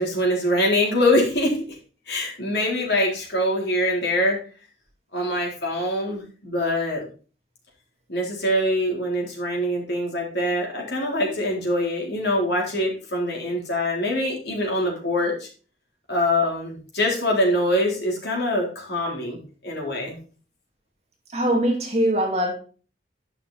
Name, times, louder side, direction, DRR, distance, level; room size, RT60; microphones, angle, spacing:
voice 1, 0.0-1.7 2.1-4.4 5.1-7.0 8.1-15.5 16.1-20.2, left 1 dB, 70° left, 3.8 m, -24 dB
voice 2, 21.3-22.5, right 1 dB, 35° right, 2.4 m, -22 dB
11.0 x 5.9 x 4.2 m
head